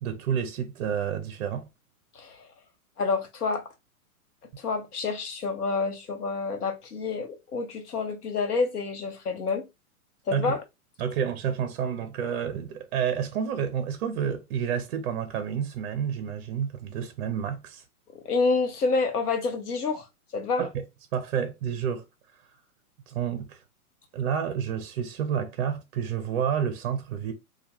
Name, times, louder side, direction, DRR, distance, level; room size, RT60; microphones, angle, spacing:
voice 1, 0.0-1.7 10.3-10.6 11.0-17.8 20.6-20.8 21.1-22.0 23.1-23.6 24.1-27.3, right 8 dB, 45° right, 0.5 m, -29 dB
voice 2, 2.1-2.5 3.0-3.6 4.6-9.7 10.3-10.6 18.1-20.1 20.3-20.6, left 4 dB, 90° left, 0.9 m, -28 dB
2.2 x 2.2 x 2.9 m
hypercardioid pair, 125°, 44 cm